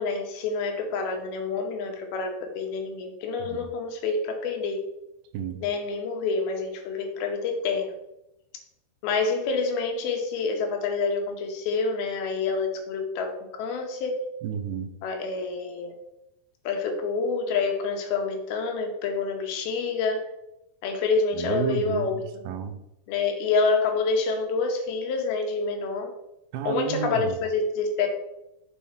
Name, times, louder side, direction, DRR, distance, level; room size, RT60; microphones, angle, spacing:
voice 1, 0.0-4.8 5.6-7.9 9.0-14.2 15.0-15.9 16.7-20.3 20.8-22.2 23.1-26.1 26.6-28.1, left 4 dB, 75° left, 2.8 m, -27 dB
voice 2, 14.4-14.9 21.3-22.8 26.5-27.4, right 7 dB, 85° right, 2.6 m, -31 dB
7.2 x 4.4 x 4.3 m
omnidirectional pair, 4.6 m